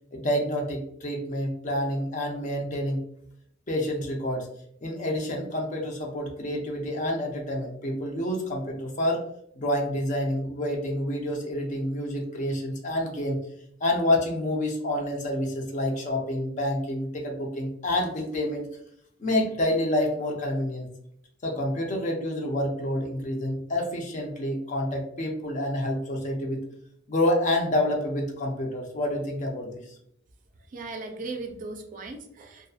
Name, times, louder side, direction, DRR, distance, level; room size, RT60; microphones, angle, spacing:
voice 1, 0.1-3.0 3.7-4.5 4.8-9.2 9.6-13.4 13.8-18.7 19.2-20.9 21.4-26.6 27.1-29.7, left 1 dB, 40° left, 0 dB, 0.5 m, -28 dB
voice 2, 30.7-32.7, right 3 dB, 40° right, 3 dB, 0.3 m, -37 dB
2.5 x 2.3 x 2.4 m, 0.71 s
head